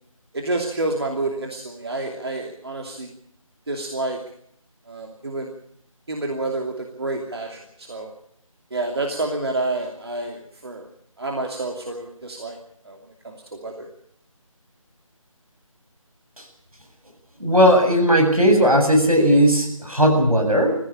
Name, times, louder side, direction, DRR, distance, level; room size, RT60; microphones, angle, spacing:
voice 1, 0.3-3.1 3.7-4.2 4.9-5.5 6.1-8.1 8.7-10.9 11.2-12.6 12.8-13.0 13.2-13.9, right 2 dB, 45° right, 2 dB, 2.8 m, -28 dB
voice 2, 17.4-20.8, equal, 85° right, 4 dB, 7.6 m, -17 dB
22.5 x 15.5 x 8.7 m, 0.69 s
figure-of-eight pair, 165°, 18 cm